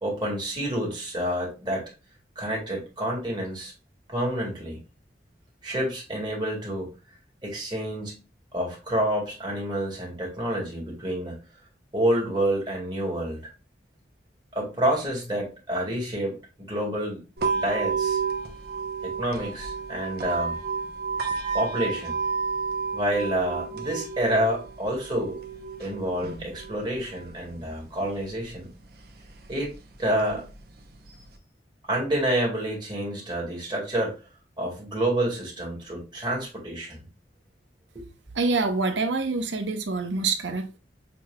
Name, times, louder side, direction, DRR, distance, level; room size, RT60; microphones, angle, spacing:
voice 1, 0.0-1.8 2.4-3.7 4.1-4.8 5.6-6.9 7.4-8.2 8.5-11.3 11.9-13.5 14.5-17.2 17.5-18.2 19.0-20.6 21.5-22.2 22.9-25.4 25.8-28.7 29.5-29.7 30.0-30.5 31.9-34.2 34.6-37.1 37.9-38.1, right 1 dB, 25° right, 2.0 m, -28 dB
sound 1, 17.4-31.4, right 5 dB, 60° right, 0.8 m, -32 dB
voice 2, 38.3-40.8, right 3 dB, 90° right, 0.8 m, -26 dB
6.9 x 2.9 x 2.3 m
head